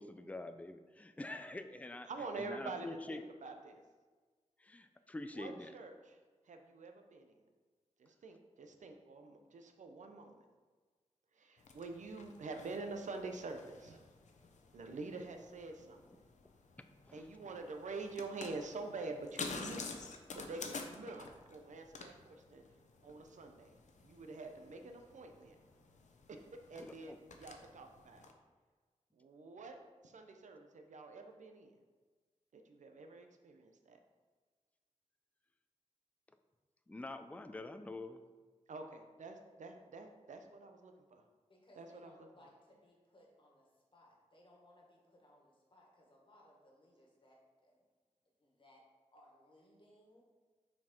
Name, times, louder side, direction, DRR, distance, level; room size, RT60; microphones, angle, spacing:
voice 1, 0.0-2.1 2.4-3.2 4.6-5.7 17.1-17.2 26.8-27.2 36.9-38.2, left 2 dB, 10° left, 9 dB, 0.4 m, -46 dB
voice 2, 2.1-3.8 5.3-6.2 6.4-7.4 8.0-10.4 11.3-14.0 14.7-16.2 17.1-20.0 20.3-22.6 23.0-23.8 24.0-25.6 26.3-26.4 26.7-28.2 29.1-29.8 30.0-31.8 32.5-34.0 38.7-41.2 41.8-42.1, right 3 dB, 85° right, 5 dB, 0.7 m, -47 dB
sound 1, 11.6-28.3, left 4 dB, 80° left, 0.7 m, -51 dB
voice 3, 41.5-47.8 48.4-48.8 49.1-50.2, left 1 dB, 45° left, -2 dB, 1.6 m, -64 dB
6.0 x 4.5 x 4.4 m, 1.4 s
wide cardioid pair, 95°, 12 cm